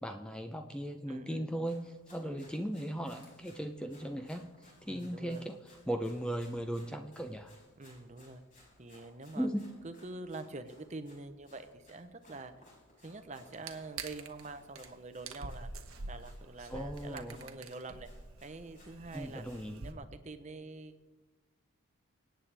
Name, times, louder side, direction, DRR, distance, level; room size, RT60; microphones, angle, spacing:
voice 1, 0.0-5.6 5.9-7.5 9.3-9.7 16.7-17.4 19.1-20.0, equal, 5° left, 5 dB, 0.6 m, -37 dB
voice 2, 1.1-1.5 2.2-2.5 4.9-5.5 7.8-8.4 8.8-9.5 9.8-12.5 13.0-15.7 16.1-18.1 18.4-19.4 19.8-21.0, right 3 dB, 35° right, 9 dB, 0.7 m, -46 dB
Run, 1.5-19.7, left 1 dB, 40° left, 5.0 m, -62 dB
sound 1, 13.5-14.4 14.8-14.9 15.2-19.9, right 3 dB, 85° right, 1.0 m, -46 dB
24.5 x 9.0 x 3.4 m, 1.2 s
head